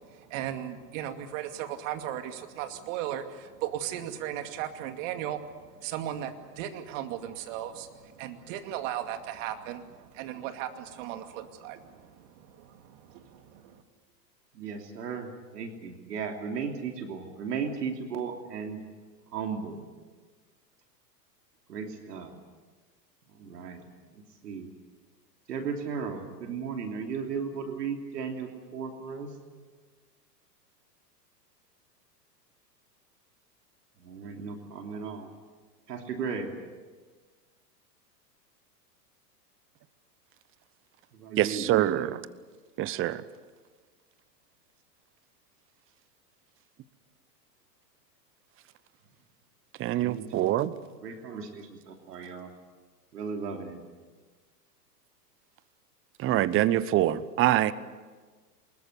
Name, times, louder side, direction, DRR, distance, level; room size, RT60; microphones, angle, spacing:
voice 1, 0.0-13.8, right 11 dB, 50° right, 7 dB, 2.6 m, -37 dB
voice 2, 14.5-18.8 19.3-19.9 21.7-22.3 23.3-23.8 24.4-24.7 25.5-29.3 34.0-35.3 35.9-36.5 41.2-42.1 49.9-50.5 51.0-52.5 53.1-53.8, right 5 dB, 70° right, 3 dB, 3.3 m, -36 dB
voice 3, 41.4-42.2 42.8-43.2 49.8-50.7 56.2-57.7, right 13 dB, 25° right, 17 dB, 0.9 m, -25 dB
24.5 x 21.5 x 8.3 m, 1.4 s
hypercardioid pair, 105°, 49 cm